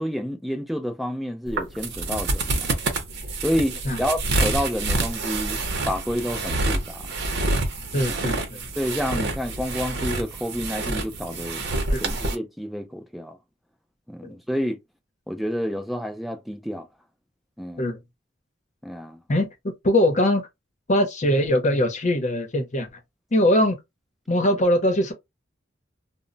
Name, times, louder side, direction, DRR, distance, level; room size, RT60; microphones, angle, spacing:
voice 1, 0.0-2.7 3.4-5.6 5.9-7.1 8.8-11.6 12.0-13.4 14.1-14.8 15.3-16.9 17.6-17.8 18.8-19.2, equal, ahead, 0.4 m, -29 dB
sound 1, 1.5-12.3, right 2 dB, 60° right, 0.7 m, -27 dB
voice 2, 7.9-8.6 11.9-12.0 14.2-14.4 17.8-18.0 19.3-20.4 20.9-22.9 23.3-23.8 24.3-25.1, left 1 dB, 40° left, 0.8 m, -21 dB
2.1 x 2.1 x 3.8 m
head